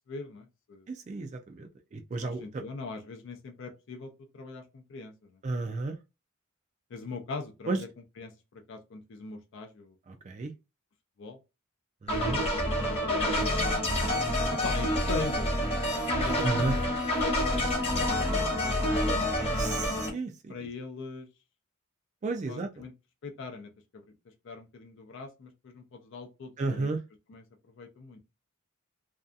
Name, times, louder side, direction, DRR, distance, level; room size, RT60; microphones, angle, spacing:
voice 1, 0.1-0.9 2.2-5.3 6.9-7.9 8.2-9.9 11.2-11.4 13.0-13.9 14.5-17.0 17.5-18.9 20.5-21.3 22.5-22.9 23.2-24.0 24.4-26.9 27.3-27.4 27.8-28.2, left 3 dB, 60° left, 0.4 m, -41 dB
voice 2, 0.9-2.6 5.4-6.0 7.7-7.8 10.1-10.5 12.0-12.4 16.4-16.8 19.6-20.5 22.2-22.8 26.6-27.0, right 3 dB, 35° right, 0.3 m, -33 dB
sound 1, 12.1-20.1, left 1 dB, 30° left, 1.0 m, -28 dB
2.6 x 2.3 x 2.3 m
head